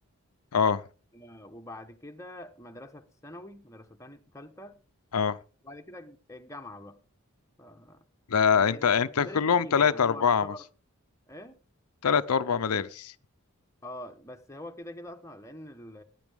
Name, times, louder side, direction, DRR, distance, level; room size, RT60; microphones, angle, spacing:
voice 1, 0.5-0.8 5.1-5.4 8.3-10.5 12.0-13.1, left 6 dB, 85° left, 0.6 m, -24 dB
voice 2, 1.1-4.8 5.6-7.0 7.6-8.0 8.5-10.6 11.3-11.6 13.8-16.0, left 1 dB, 15° left, 1.1 m, -45 dB
18.0 x 10.0 x 3.6 m
head